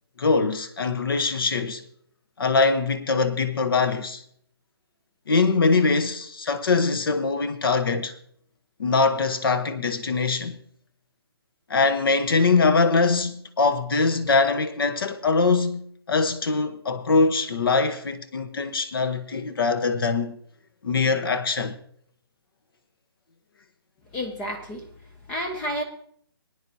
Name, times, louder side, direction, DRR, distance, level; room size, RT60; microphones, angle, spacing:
voice 1, 0.2-1.8 2.4-4.2 5.3-8.1 8.8-10.6 11.7-20.4 20.8-21.7, left 4 dB, 60° left, 1.1 m, -22 dB
voice 2, 24.1-24.9 25.3-25.8, equal, 10° left, 0.4 m, -30 dB
22.5 x 9.5 x 2.8 m
hypercardioid pair, 160°, 13 cm